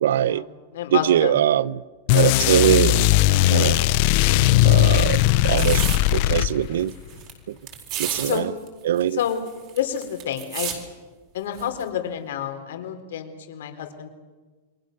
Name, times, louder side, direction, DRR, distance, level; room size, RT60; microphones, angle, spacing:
voice 1, 0.0-0.4 0.9-1.8 2.1-3.1 3.5-3.8 4.6-5.8 6.1-6.9 7.5-7.6 8.0-8.5 8.8-9.2, right 11 dB, 70° right, 0.8 m, -21 dB
voice 2, 0.7-1.3 8.2-8.5 9.1-9.5 9.7-10.7 11.3-14.1, left 9 dB, 70° left, 4.0 m, -29 dB
sound 1, 2.1-6.9, left 16 dB, 40° left, 0.7 m, -18 dB
sound 2, 5.3-6.0 6.5-6.6 6.8-7.3 7.7-8.4 8.7-8.8 9.0-10.8 11.6-11.8, right 9 dB, 30° right, 4.4 m, -31 dB
29.0 x 23.0 x 6.7 m
supercardioid pair, 175°, 0 cm